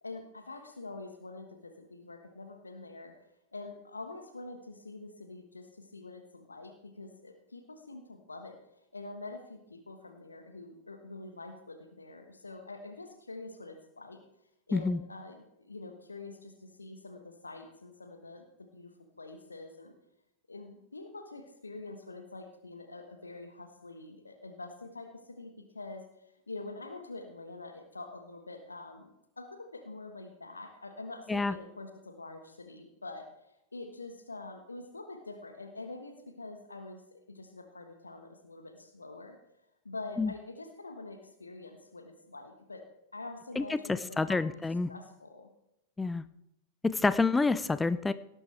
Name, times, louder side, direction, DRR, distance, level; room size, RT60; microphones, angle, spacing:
voice 1, 0.0-3.1 3.5-8.6 8.9-14.2 14.7-18.9 19.2-19.9 20.5-29.1 29.4-33.3 33.7-39.4 39.8-42.8 43.1-44.6 44.9-45.5, left 3 dB, 80° left, 6 dB, 1.4 m, -45 dB
voice 2, 44.2-44.9 46.0-46.2 46.8-48.1, left 3 dB, 10° left, 16 dB, 0.5 m, -28 dB
18.0 x 10.5 x 3.4 m, 0.84 s
figure-of-eight pair, 90°, 0 cm